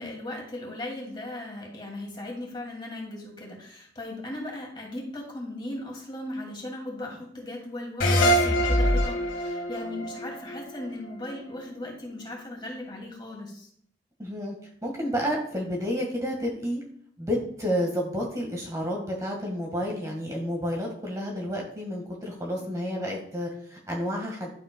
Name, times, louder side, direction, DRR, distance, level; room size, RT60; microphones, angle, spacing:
voice 1, 0.0-13.7, left 1 dB, 25° left, -1 dB, 2.3 m, -37 dB
sound 1, 8.0-11.3, equal, 85° left, 1.8 m, -24 dB
voice 2, 14.2-14.5 14.8-16.8 17.2-24.5, equal, 20° right, -1 dB, 1.5 m, -30 dB
11.5 x 7.8 x 2.2 m, 0.64 s
head